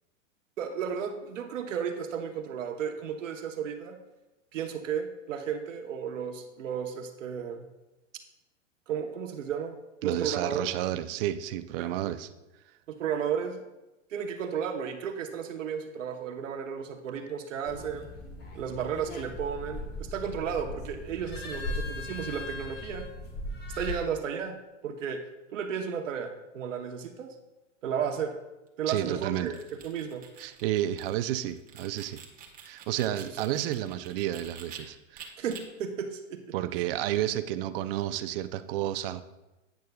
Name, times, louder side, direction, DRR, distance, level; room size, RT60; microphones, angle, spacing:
voice 1, 0.6-4.0 4.5-7.7 8.9-9.7 10.0-10.7 11.8-12.2 12.9-13.6 14.1-18.1 18.5-23.1 23.7-24.6 24.8-25.2 25.5-27.3 27.8-28.3 28.8-29.6 29.8-30.2 33.0-33.5 35.4-36.4 36.8-36.9, right 7 dB, 75° right, 5 dB, 1.1 m, -33 dB
voice 2, 10.0-12.3 28.9-29.5 30.4-32.2 32.6-35.3 36.5-39.2, right 13 dB, 50° right, 12 dB, 0.6 m, -31 dB
sound 1, 17.6-24.0, left 2 dB, 25° left, 1.5 m, -38 dB
sound 2, 29.3-34.8 35.2-35.6, right 8 dB, 20° right, 1.4 m, -48 dB
10.5 x 9.5 x 2.3 m, 1.0 s
hypercardioid pair, 120°, 38 cm